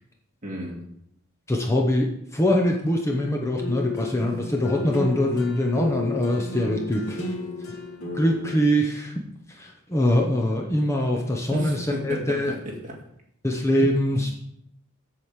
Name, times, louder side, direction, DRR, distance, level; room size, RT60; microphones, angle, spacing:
voice 1, 0.4-0.8 11.5-12.9, equal, 35° right, -2 dB, 2.2 m, -33 dB
voice 2, 1.5-7.3 8.1-9.1 9.5-12.5 13.4-14.3, left 1 dB, 15° left, 0 dB, 0.9 m, -23 dB
sound 1, 3.6-8.5, left 3 dB, 90° left, 2.7 m, -33 dB
7.8 x 4.9 x 7.4 m, 0.76 s
head